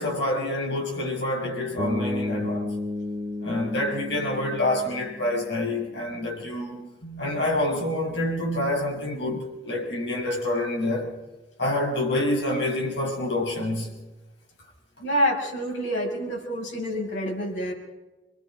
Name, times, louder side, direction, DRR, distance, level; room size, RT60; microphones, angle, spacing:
voice 1, 0.0-2.8 3.4-6.9 7.2-11.1 11.6-13.9, left 1 dB, 70° left, 6.4 m, -27 dB
Bass guitar, 1.8-5.9, left 2 dB, 35° right, 2.3 m, -32 dB
voice 2, 15.0-17.7, equal, 90° left, 6.6 m, -27 dB
26.5 x 22.5 x 5.2 m
head